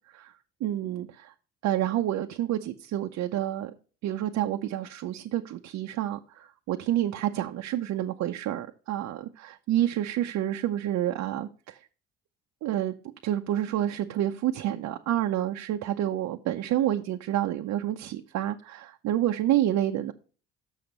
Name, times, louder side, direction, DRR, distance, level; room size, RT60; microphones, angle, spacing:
voice 1, 0.6-1.3 1.6-3.7 4.0-11.8 12.6-12.9 13.2-20.1, right 12 dB, 65° right, 0.7 m, -29 dB
6.5 x 6.1 x 5.4 m
supercardioid pair, 80°, 29 cm